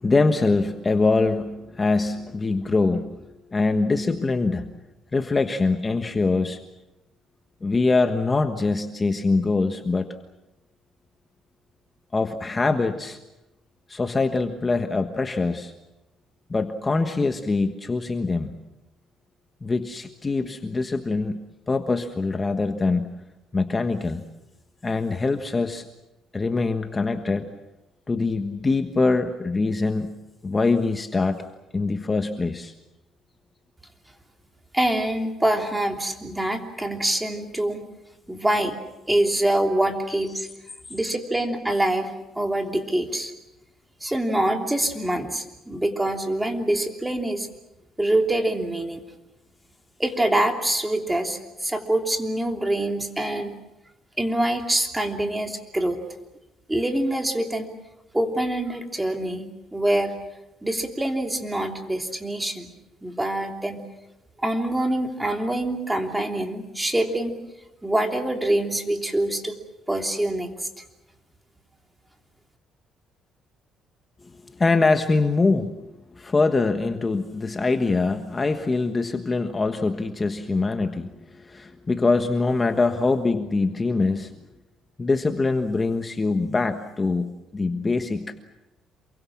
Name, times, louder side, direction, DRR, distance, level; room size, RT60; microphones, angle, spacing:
voice 1, 0.0-4.7 5.1-6.6 7.6-10.1 12.1-13.2 13.9-15.7 16.5-18.5 19.6-21.4 21.7-23.2 23.5-24.2 24.8-25.9 26.3-27.5 28.1-30.2 30.4-31.4 31.7-32.7 74.2-84.4 85.0-88.3, left 3 dB, 25° left, 7 dB, 1.3 m, -23 dB
voice 2, 34.7-37.8 38.3-38.8 39.1-40.5 40.9-42.1 42.3-43.3 44.0-47.5 48.0-49.0 50.0-53.5 54.2-56.0 56.7-57.7 58.1-60.1 60.6-62.7 63.0-63.8 64.4-67.3 67.8-69.6 69.9-70.5, right 1 dB, 10° right, 4 dB, 3.1 m, -25 dB
28.0 x 23.5 x 7.3 m, 0.97 s
cardioid pair, 115°, 0 cm